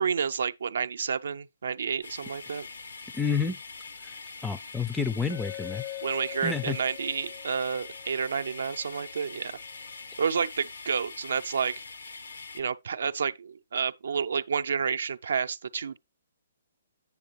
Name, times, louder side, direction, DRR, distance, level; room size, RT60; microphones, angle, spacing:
voice 1, 0.0-2.7 6.0-9.6 10.2-11.8 12.5-16.0, right 6 dB, 65° right, 0.5 m, -30 dB
sound 1, 2.0-12.6, left 4 dB, 80° left, 1.1 m, -43 dB
voice 2, 3.1-3.6 4.4-5.8 6.4-6.8, left 5 dB, 5° left, 0.5 m, -29 dB
Glass, 5.3-9.4, left 19 dB, 50° left, 0.9 m, -43 dB
8.4 x 6.5 x 3.1 m
figure-of-eight pair, 130°, 0 cm